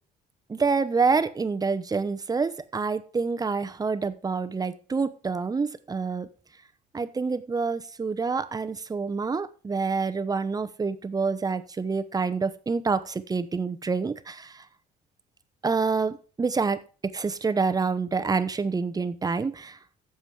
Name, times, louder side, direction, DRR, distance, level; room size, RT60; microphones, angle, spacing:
voice 1, 0.5-6.3 6.9-14.6 15.6-16.8 17.1-19.8, right 4 dB, 20° right, 12 dB, 0.9 m, -27 dB
11.0 x 7.4 x 4.8 m, 0.38 s
cardioid pair, 110°, 17 cm